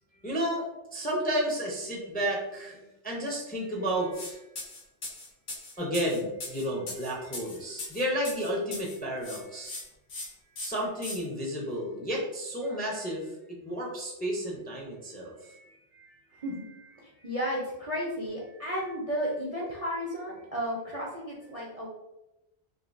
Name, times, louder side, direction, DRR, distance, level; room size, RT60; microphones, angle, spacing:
voice 1, 0.2-2.8 3.0-4.4 5.8-9.8 10.6-13.3 13.6-16.1, equal, 10° left, -3 dB, 0.4 m, -32 dB
sound 1, 4.1-4.3 4.6-9.0 9.2-9.8 10.1-10.3 10.6-11.2, left 2 dB, 85° left, 1.3 m, -39 dB
voice 2, 16.3-16.7 17.0-21.9, equal, 40° right, -4 dB, 0.5 m, -33 dB
3.5 x 2.6 x 2.6 m, 0.93 s
omnidirectional pair, 1.2 m